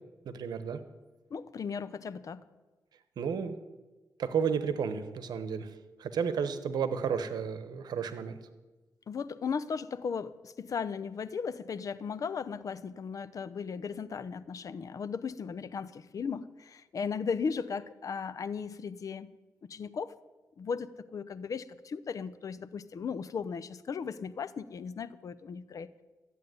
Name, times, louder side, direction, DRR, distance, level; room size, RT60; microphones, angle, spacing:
voice 1, 0.2-0.8 3.2-3.6 4.2-5.7 6.0-8.4, right 6 dB, 80° right, 11 dB, 1.1 m, -32 dB
voice 2, 1.3-2.4 9.1-19.3 19.6-20.2 20.6-26.0, left 6 dB, 55° left, 16 dB, 0.7 m, -36 dB
13.5 x 8.4 x 9.4 m, 1.2 s
cardioid pair, 100°, 7 cm